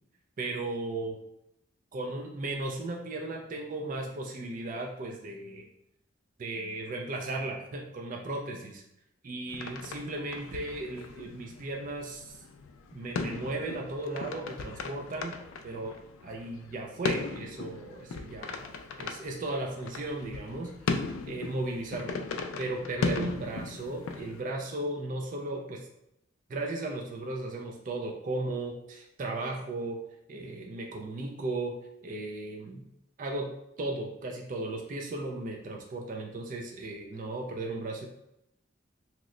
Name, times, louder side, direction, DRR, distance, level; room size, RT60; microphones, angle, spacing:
voice 1, 0.4-1.2 1.9-5.7 6.4-8.8 9.2-12.4 12.9-15.3 15.6-16.0 16.2-18.7 19.0-20.7 21.3-22.2 22.6-25.9 26.5-30.0 30.3-32.8 33.2-33.5 33.8-38.1, right 2 dB, 40° right, 1 dB, 0.4 m, -36 dB
sound 1, 9.5-24.4, left 4 dB, 80° left, 0.3 m, -37 dB
2.9 x 2.0 x 3.7 m, 0.80 s
head